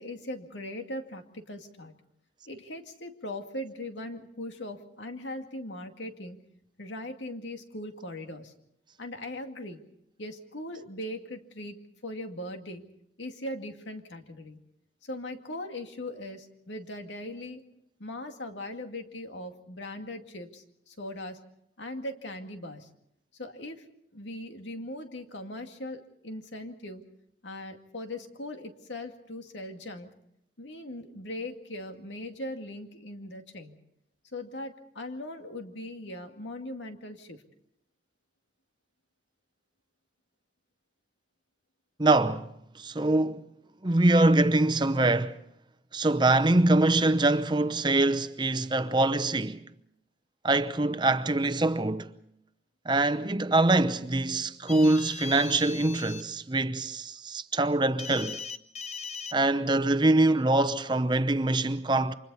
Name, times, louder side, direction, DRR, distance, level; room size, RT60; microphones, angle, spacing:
voice 1, 0.0-1.9 2.5-6.4 6.8-8.5 9.0-9.8 10.2-11.8 12.0-12.8 13.2-14.6 15.0-17.6 18.0-21.4 21.8-22.9 23.4-23.8 24.1-27.0 27.4-30.1 30.6-33.8 34.3-37.4, left 1 dB, 85° left, 2.2 m, -39 dB
voice 2, 42.0-42.5 42.8-43.4 43.8-45.4 45.9-49.6 50.4-52.1 52.9-58.4 59.3-62.1, right 2 dB, 25° right, 0.7 m, -24 dB
sound 1, 54.7-56.2 58.0-59.3, left 5 dB, 40° left, 0.9 m, -39 dB
29.5 x 25.5 x 4.2 m
head